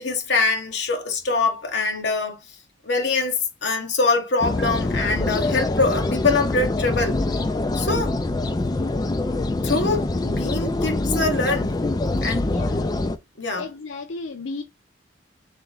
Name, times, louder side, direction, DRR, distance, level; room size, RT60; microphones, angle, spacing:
voice 1, 0.0-2.4 2.8-7.2 7.7-8.2 9.6-11.8 12.2-12.5 13.4-13.7, left 3 dB, 60° left, 1.1 m, -24 dB
sound 1, 4.4-13.2, left 2 dB, 20° left, 0.3 m, -24 dB
voice 2, 12.5-12.9 13.6-14.6, left 3 dB, 85° left, 0.5 m, -34 dB
3.5 x 3.2 x 3.9 m
head